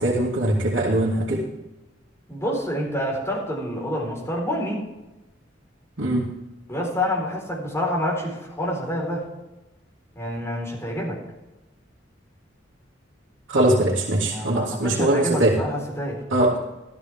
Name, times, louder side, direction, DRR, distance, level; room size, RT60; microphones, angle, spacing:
voice 1, 0.0-1.4 6.0-6.3 13.5-15.6 16.3-16.6, right 1 dB, 85° right, -6 dB, 2.3 m, -21 dB
voice 2, 2.3-4.8 6.7-9.3 10.1-11.2 13.6-13.7 14.3-16.2, equal, 15° left, -2 dB, 4.3 m, -27 dB
14.0 x 13.5 x 3.6 m, 1.0 s
head